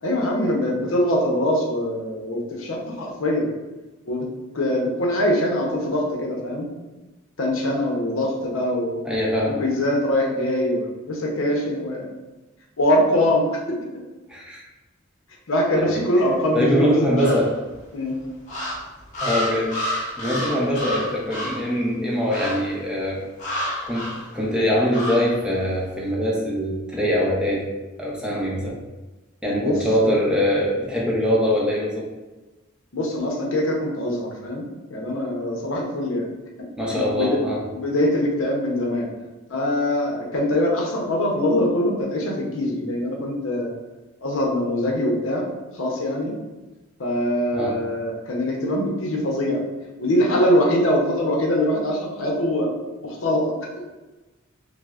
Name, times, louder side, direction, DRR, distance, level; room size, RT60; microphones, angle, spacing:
voice 1, 0.0-3.5 4.1-4.3 4.5-6.7 7.4-9.0 9.5-12.1 12.8-14.0 15.5-16.9 17.2-17.3 17.9-18.2 29.6-29.8 32.9-36.3 36.8-37.4 37.7-39.1 39.5-43.7 44.2-45.5 45.7-46.3 47.0-49.7 50.0-52.7 53.0-53.8, left 1 dB, 70° left, -1 dB, 0.7 m, -23 dB
voice 2, 9.0-9.6 14.3-14.6 15.8-16.0 16.5-17.5 19.2-19.7 20.2-23.2 23.8-27.7 28.0-28.8 29.4-32.1 36.8-37.6 47.5-47.8, equal, 5° right, -4 dB, 0.6 m, -23 dB
sound 1, 17.2-17.8 18.4-21.7 22.3-22.7 23.4-24.3 24.9-25.4, equal, 40° left, 1.1 m, -29 dB
5.8 x 2.0 x 2.4 m, 1.1 s
head